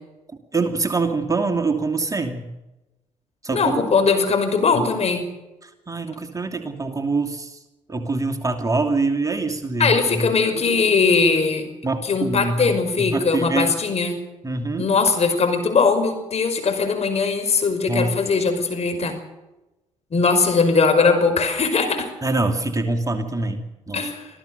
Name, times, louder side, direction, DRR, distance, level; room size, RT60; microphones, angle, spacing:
voice 1, 0.5-2.5 3.4-3.8 5.6-7.6 7.9-10.3 11.8-12.7 13.0-13.7 14.4-14.9 17.9-18.1 22.2-24.1, right 3 dB, 20° right, 4 dB, 2.6 m, -24 dB
voice 2, 3.5-5.3 9.8-11.7 12.0-14.2 14.8-19.1 20.1-22.1 23.9-24.3, left 4 dB, 40° left, 6 dB, 5.6 m, -20 dB
25.5 x 15.5 x 6.8 m, 1.0 s
hypercardioid pair, 50°, 16 cm